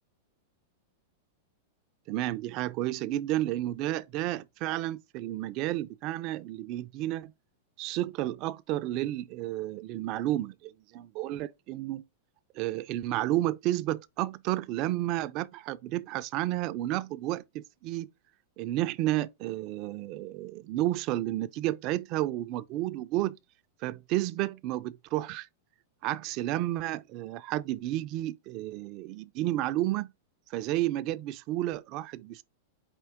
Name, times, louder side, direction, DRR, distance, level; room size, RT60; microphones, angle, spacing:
voice 1, 2.1-7.3 7.8-12.0 12.5-18.1 18.6-23.4 23.8-25.5 26.0-30.1 30.5-32.4, right 15 dB, 45° right, 0.3 m, -31 dB
4.4 x 2.8 x 3.5 m
hypercardioid pair, 110°, 0 cm